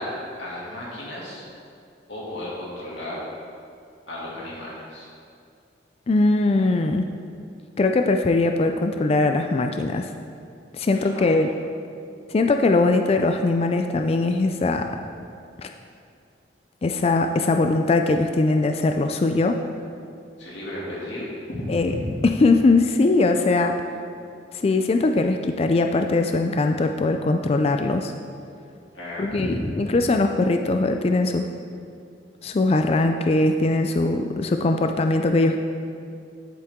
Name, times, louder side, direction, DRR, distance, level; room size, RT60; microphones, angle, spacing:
voice 1, 0.0-1.4 2.1-3.2 4.1-5.1 10.9-11.3 20.4-22.1 28.9-29.6, left 1 dB, 80° left, -6 dB, 2.5 m, -33 dB
voice 2, 6.1-7.1 7.8-10.1 10.7-11.5 12.3-14.9 15.6-15.7 16.8-19.6 21.7-21.9 22.2-23.8 24.5-28.1 29.2-31.5 32.4-35.6, left 2 dB, 35° left, 5 dB, 0.3 m, -21 dB
10.5 x 8.4 x 3.6 m, 2.4 s
head